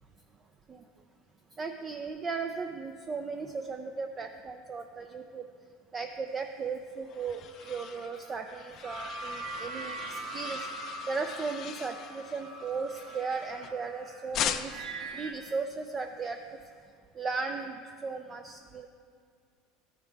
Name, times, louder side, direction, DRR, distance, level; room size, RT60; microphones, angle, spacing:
voice 1, 1.6-5.4 5.9-10.7 11.1-14.8 15.1-16.4 17.1-18.9, right 4 dB, 25° right, 5 dB, 0.4 m, -36 dB
sound 1, 6.6-13.9 14.3-15.0, left 9 dB, 40° left, 0.4 m, -40 dB
sound 2, 7.5-15.3, right 3 dB, 55° right, 2.1 m, -42 dB
13.0 x 5.7 x 4.6 m, 2.3 s
supercardioid pair, 135°, 0 cm